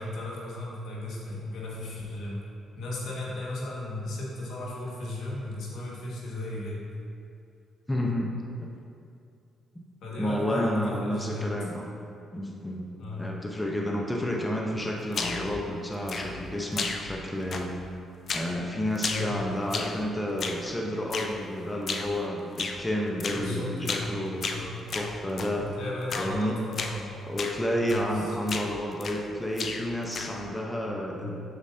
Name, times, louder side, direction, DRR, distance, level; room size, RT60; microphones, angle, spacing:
voice 1, 0.0-2.4 2.8-6.8 10.0-11.5 13.0-13.3 19.1-19.3 23.3-24.0 24.5-24.8 25.6-27.3 27.8-28.4 31.1-31.4, left 2 dB, 75° left, -4 dB, 1.8 m, -35 dB
voice 2, 7.9-8.3 8.6-8.7 10.2-11.9 12.3-12.8 13.1-17.7 18.3-24.5 24.9-25.7 26.2-26.6 27.2-31.4, equal, 10° left, -1 dB, 0.9 m, -30 dB
sound 1, 15.1-15.6 16.1-16.5 16.8-17.2 17.5-17.9 18.3-18.6 18.9-20.0 20.4-20.7 21.1-21.4 21.9-22.1 22.6-22.8 23.2-23.5 23.8-24.1 24.4-25.6 26.1-26.4 26.7-27.0 27.4-27.6 27.9-28.2 28.5-29.3 29.6-30.4, left 4 dB, 50° left, 0.6 m, -34 dB
8.4 x 7.1 x 2.8 m, 2.5 s
cardioid pair, 90°, 0 cm